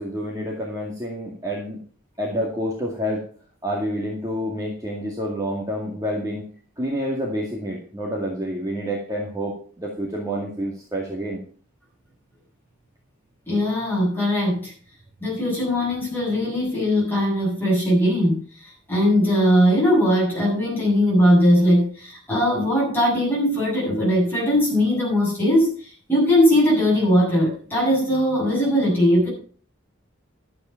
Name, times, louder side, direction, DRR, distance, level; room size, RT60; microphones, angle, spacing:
voice 1, 0.0-1.8 2.2-3.2 3.6-6.4 6.8-11.4, equal, 15° right, -3 dB, 2.1 m, -28 dB
voice 2, 13.5-14.7 15.2-29.3, equal, 10° left, -5 dB, 7.9 m, -20 dB
12.0 x 8.3 x 5.8 m, 0.43 s
head